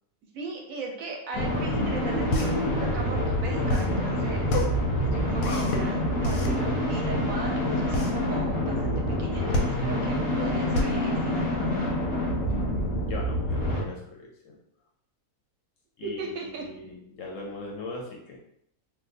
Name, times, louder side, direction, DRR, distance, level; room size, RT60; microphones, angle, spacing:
voice 1, 0.3-4.5 5.0-11.7 12.5-12.7 16.0-16.6, right 3 dB, 70° right, 1 dB, 0.9 m, -38 dB
sound 1, 1.3-13.8, left 1 dB, 20° left, 0.7 m, -27 dB
sound 2, 1.9-12.2, left 1 dB, 90° left, 1.2 m, -30 dB
voice 2, 13.1-14.5 16.0-18.4, left 2 dB, 65° left, -1 dB, 0.9 m, -40 dB
2.6 x 2.2 x 3.9 m, 0.74 s
omnidirectional pair, 1.6 m